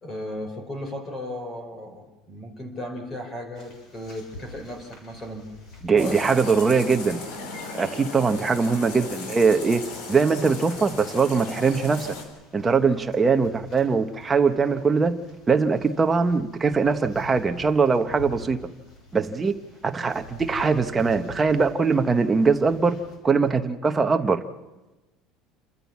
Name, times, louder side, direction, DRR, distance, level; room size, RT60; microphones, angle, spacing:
voice 1, 0.0-5.4 5.9-6.6, left 1 dB, 15° left, 3 dB, 4.2 m, -35 dB
sound 1, 3.5-23.2, left 2 dB, 35° left, 7.2 m, -48 dB
voice 2, 5.8-7.2 7.7-9.8 10.1-12.1 12.5-15.1 15.5-18.6 19.1-19.5 19.8-23.0 23.2-24.4, right 5 dB, 15° right, 7 dB, 1.0 m, -21 dB
sound 2, 6.0-12.2, left 3 dB, 75° left, 4.5 m, -37 dB
28.5 x 14.0 x 7.3 m, 1.1 s
cardioid pair, 175°, 0 cm